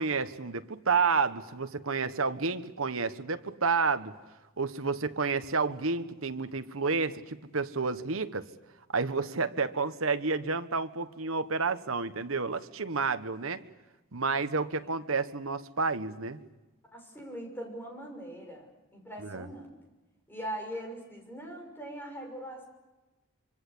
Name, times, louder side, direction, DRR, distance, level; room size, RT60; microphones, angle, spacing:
voice 1, 0.0-4.1 4.6-8.5 8.9-13.6 14.1-16.4 19.2-19.5, right 4 dB, 75° right, 10 dB, 1.3 m, -30 dB
voice 2, 16.9-19.8 20.3-22.6, right 1 dB, 10° left, 2 dB, 6.4 m, -41 dB
26.0 x 25.0 x 8.5 m, 1.1 s
head